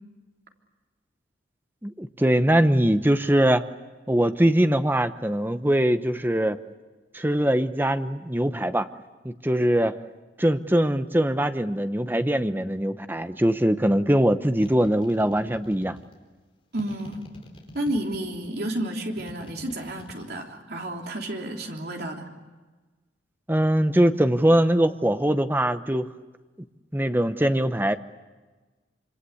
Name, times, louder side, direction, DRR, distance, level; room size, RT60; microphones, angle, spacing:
voice 1, 1.8-3.7 4.1-6.6 7.1-8.9 9.2-10.0 10.4-16.0 23.5-26.1 26.9-28.0, right 1 dB, 10° right, 10 dB, 0.9 m, -22 dB
sound 1, 14.6-16.2 16.8-18.5 19.2-20.3, equal, 30° left, 4.3 m, -45 dB
voice 2, 16.7-17.2 17.7-22.2, right 1 dB, 55° right, 1 dB, 3.3 m, -31 dB
26.5 x 26.0 x 8.5 m, 1.3 s
head